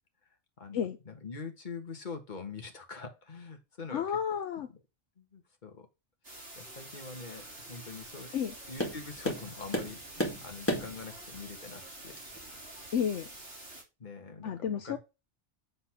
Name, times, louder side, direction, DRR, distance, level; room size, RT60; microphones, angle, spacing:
voice 1, 0.6-4.0 5.2-5.9 6.5-8.3 8.7-12.2 14.0-15.0, left 4 dB, 40° left, 1.6 m, -44 dB
voice 2, 3.9-4.7 8.3-8.5 12.9-13.3 14.4-15.0, left 8 dB, 75° left, 1.0 m, -31 dB
sound 1, 6.2-13.8, right 2 dB, 55° right, 3.4 m, -47 dB
Tap, 7.3-13.6, equal, 10° left, 2.1 m, -39 dB
8.2 x 4.0 x 5.8 m
omnidirectional pair, 1.3 m